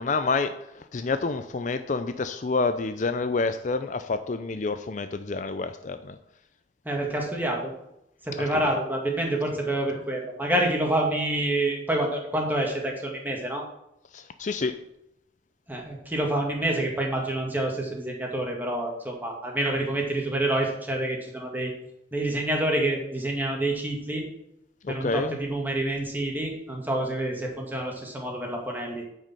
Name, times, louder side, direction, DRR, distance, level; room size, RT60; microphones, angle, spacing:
voice 1, 0.0-6.2 8.7-8.8 14.1-14.8 24.8-25.4, left 3 dB, 45° left, 10 dB, 0.5 m, -28 dB
voice 2, 6.9-7.7 8.3-13.6 15.7-21.7 22.1-24.2 24.9-29.0, right 1 dB, 10° right, 0 dB, 2.1 m, -27 dB
9.5 x 5.2 x 7.5 m, 0.82 s
head